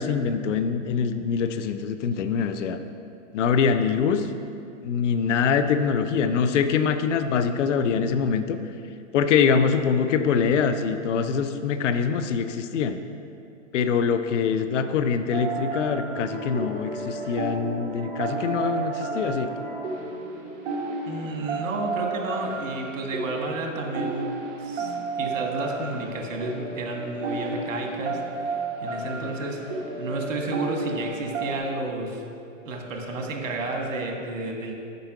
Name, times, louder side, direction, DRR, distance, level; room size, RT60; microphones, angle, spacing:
voice 1, 0.0-2.8 3.3-4.3 4.8-8.6 9.1-13.0 13.7-19.5, left 6 dB, 70° left, 10 dB, 0.6 m, -24 dB
sound 1, 15.3-31.6, right 3 dB, 45° right, 1.4 m, -32 dB
voice 2, 21.1-24.3 24.6-29.6 30.0-32.2 32.6-34.7, right 2 dB, 75° right, 2 dB, 1.4 m, -32 dB
6.8 x 5.5 x 4.7 m, 2.5 s
hypercardioid pair, 135°, 38 cm